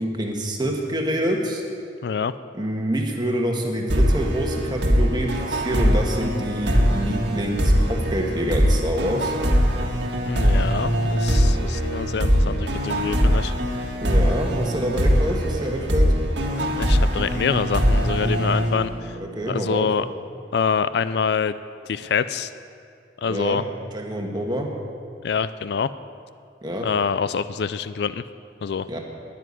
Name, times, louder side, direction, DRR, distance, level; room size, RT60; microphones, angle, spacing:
voice 1, 0.0-1.6 2.5-9.3 14.0-16.1 19.2-19.9 23.3-23.6 23.9-24.7 26.6-26.9 28.9-29.0, equal, 25° right, 1 dB, 1.5 m, -26 dB
sound 1, 3.9-19.3, equal, 75° right, 1.7 m, -22 dB
voice 2, 10.3-13.9 16.8-19.2 19.5-20.1 20.5-21.6 21.9-22.5 23.2-23.6 25.2-25.9 26.8-28.2 28.6-28.9, left 6 dB, 65° left, 14 dB, 0.4 m, -25 dB
10.0 x 9.2 x 9.9 m, 2.4 s
head